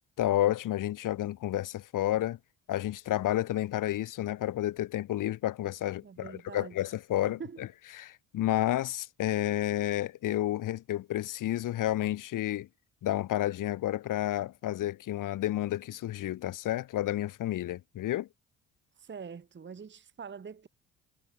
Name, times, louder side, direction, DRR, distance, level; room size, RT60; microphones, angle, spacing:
voice 1, 0.2-2.4 2.7-7.7 7.9-12.7 13.0-18.3, left 13 dB, 50° left, 0.8 m, -30 dB
voice 2, 6.0-6.8 7.4-7.7 19.0-20.7, right 6 dB, 25° right, 1.2 m, -44 dB
hypercardioid pair, 45°, 42 cm